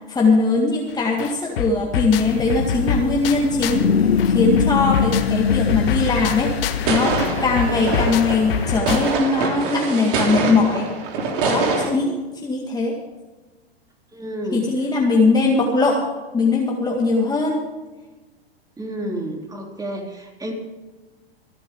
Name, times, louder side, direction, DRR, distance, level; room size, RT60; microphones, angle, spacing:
voice 1, 0.1-6.5 6.9-10.9 11.5-13.0 14.5-16.1 16.3-17.6, left 3 dB, 15° left, -1 dB, 2.0 m, -20 dB
sound 1, 0.9-1.0 1.2-3.9 4.2-9.3, left 8 dB, 65° left, 1.6 m, -27 dB
sound 2, 2.2-8.8, left 7 dB, 85° left, 0.6 m, -23 dB
sound 3, 6.8-11.9, right 3 dB, 55° right, 3.4 m, -24 dB
voice 2, 14.1-14.6 18.8-20.5, right 1 dB, 10° right, 1 dB, 3.3 m, -30 dB
26.5 x 9.1 x 3.7 m, 1.2 s
hypercardioid pair, 105°, 31 cm